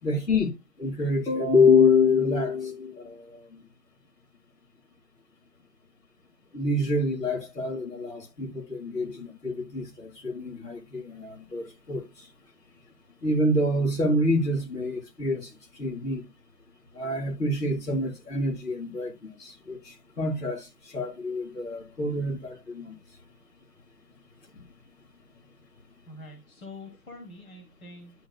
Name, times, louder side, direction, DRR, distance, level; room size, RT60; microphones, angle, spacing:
voice 1, 0.0-3.6 6.5-12.3 13.2-16.2 16.9-22.9 24.5-24.6, left 3 dB, 90° left, 4.2 m, -26 dB
voice 2, 26.1-28.1, left 2 dB, 60° left, 2.9 m, -45 dB
12.5 x 4.6 x 2.2 m
hypercardioid pair, 180°, 47 cm